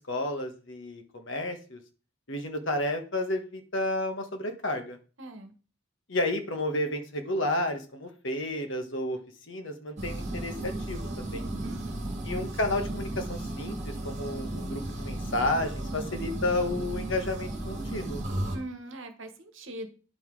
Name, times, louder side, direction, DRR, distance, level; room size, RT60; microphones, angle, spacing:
voice 1, 0.1-1.8 2.3-5.0 6.1-9.2 9.5-11.4 12.3-18.2, left 1 dB, 55° left, 6 dB, 1.4 m, -31 dB
voice 2, 5.2-5.5 11.6-12.1 18.5-19.9, right 1 dB, 60° right, 7 dB, 1.4 m, -41 dB
sound 1, 10.0-18.6, right 1 dB, 30° right, 2.4 m, -35 dB
9.7 x 5.8 x 4.8 m, 0.36 s
head